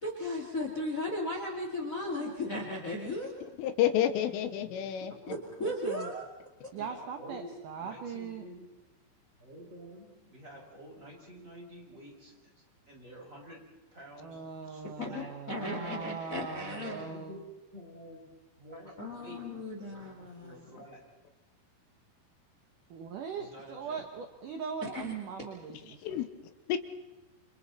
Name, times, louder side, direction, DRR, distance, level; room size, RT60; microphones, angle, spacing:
voice 1, 0.0-3.3 5.3-6.3 15.0-17.0 19.0-20.6 24.9-25.1, left 1 dB, 35° left, 0 dB, 1.3 m, -36 dB
voice 2, 3.6-5.1 26.0-26.3 26.7-26.8, left 11 dB, 80° left, 9 dB, 3.7 m, -29 dB
voice 3, 4.1-5.5 6.7-7.5 7.8-8.7 9.4-13.6 13.9-15.3 16.8-17.5 17.7-18.3 18.6-19.4 19.8-20.1 20.4-21.0 23.3-24.1, equal, 15° right, -2 dB, 6.3 m, -50 dB
voice 4, 5.6-6.1 6.7-8.4 14.2-17.4 22.9-26.1, right 6 dB, 80° right, 5 dB, 1.8 m, -40 dB
29.0 x 27.0 x 4.2 m, 1.1 s
omnidirectional pair, 5.8 m